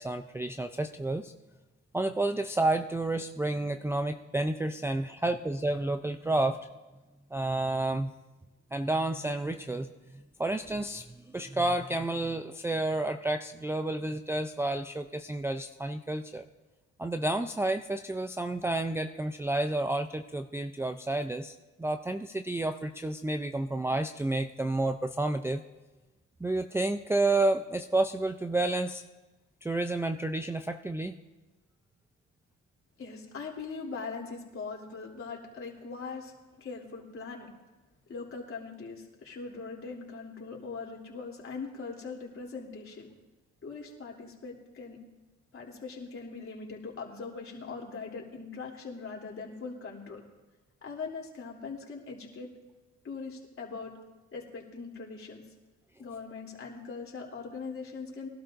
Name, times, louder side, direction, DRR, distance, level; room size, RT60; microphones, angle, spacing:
voice 1, 0.0-1.3 1.9-6.7 7.3-8.1 8.7-16.5 17.0-25.6 26.4-29.0 29.6-31.2, right 2 dB, 10° right, 5 dB, 0.4 m, -30 dB
voice 2, 33.0-37.5 38.1-43.1 43.6-45.0 45.5-50.2 50.8-52.5 53.0-53.9 54.3-55.4 56.0-58.3, left 4 dB, 45° left, -2 dB, 3.3 m, -41 dB
22.0 x 12.0 x 2.6 m, 1.2 s
cardioid pair, 90°, 30 cm